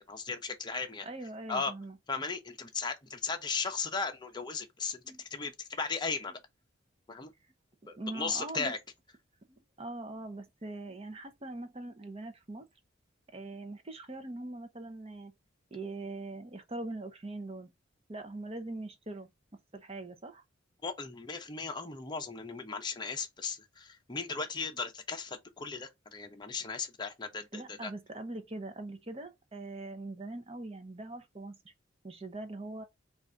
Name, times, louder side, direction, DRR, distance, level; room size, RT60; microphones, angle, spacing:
voice 1, 0.1-1.1 1.5-1.7 2.1-6.4 7.1-7.3 7.9-8.8 20.8-27.9, left 4 dB, 20° left, 0.7 m, -36 dB
voice 2, 1.0-2.0 5.0-5.2 8.0-8.7 9.5-12.7 13.3-15.3 15.7-17.7 18.1-19.3 19.7-20.4 27.5-31.7 32.0-32.8, right 2 dB, 30° right, 0.7 m, -42 dB
3.8 x 2.5 x 4.4 m
head